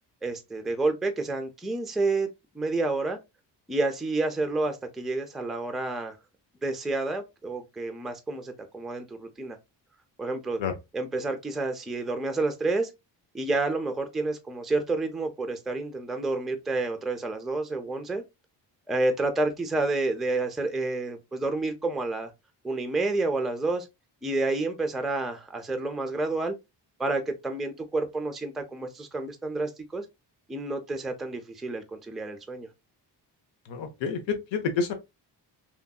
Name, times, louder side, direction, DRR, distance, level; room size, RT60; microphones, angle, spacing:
voice 1, 0.2-2.3 2.5-3.2 3.7-6.2 6.6-9.6 10.2-10.6 10.9-12.9 13.3-18.2 18.9-22.3 22.6-23.9 24.2-26.6 27.0-30.0 30.5-32.7, right 2 dB, ahead, 0.4 m, -29 dB
voice 2, 33.7-34.9, left 5 dB, 85° left, 0.7 m, -28 dB
3.0 x 2.6 x 2.2 m
cardioid pair, 105°, 44 cm